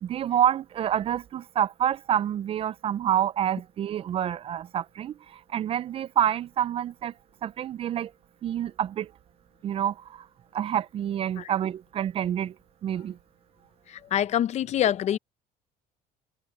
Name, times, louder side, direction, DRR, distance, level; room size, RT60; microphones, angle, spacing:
voice 1, 0.0-7.1 7.4-8.1 8.4-9.1 9.6-10.3 10.5-12.5 12.8-13.2, right 10 dB, 40° right, 0.4 m, -28 dB
voice 2, 13.9-15.2, left 11 dB, 45° left, 0.6 m, -25 dB
cardioid pair, 135°, 16 cm